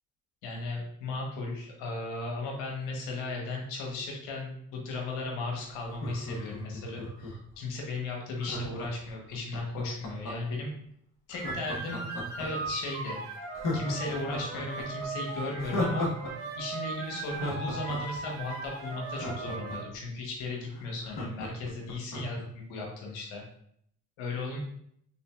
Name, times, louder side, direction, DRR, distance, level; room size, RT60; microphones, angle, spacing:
voice 1, 0.4-10.7 11.3-12.1 12.4-13.2 13.7-16.1 16.5-23.4 24.2-24.6, left 2 dB, 90° left, 0 dB, 1.1 m, -36 dB
Laughter, 5.9-7.5 8.4-10.6 11.3-12.7 13.1-13.2 13.5-16.3 16.6-16.7 17.1-20.0 20.4-20.5 20.7-22.4 22.8-22.9, left 2 dB, 55° left, 1.4 m, -36 dB
sound 1, 11.3-19.8, right 3 dB, 80° right, 1.2 m, -38 dB
5.5 x 3.5 x 2.4 m, 0.69 s
supercardioid pair, 55°, 36 cm